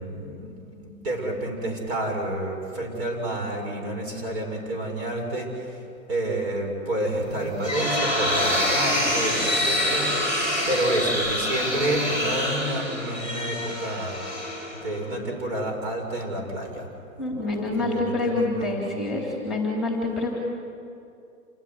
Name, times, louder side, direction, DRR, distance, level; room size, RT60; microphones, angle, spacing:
voice 1, 0.0-5.8 6.1-10.1 10.7-14.2 14.8-16.9 17.2-18.7, right 1 dB, 45° right, 2 dB, 7.2 m, -29 dB
sound 1, 7.3-15.1, left 1 dB, 25° right, 5.7 m, -26 dB
voice 2, 17.2-20.3, left 2 dB, ahead, -1 dB, 3.6 m, -27 dB
28.5 x 16.0 x 9.8 m, 2.5 s
hypercardioid pair, 135°, 42 cm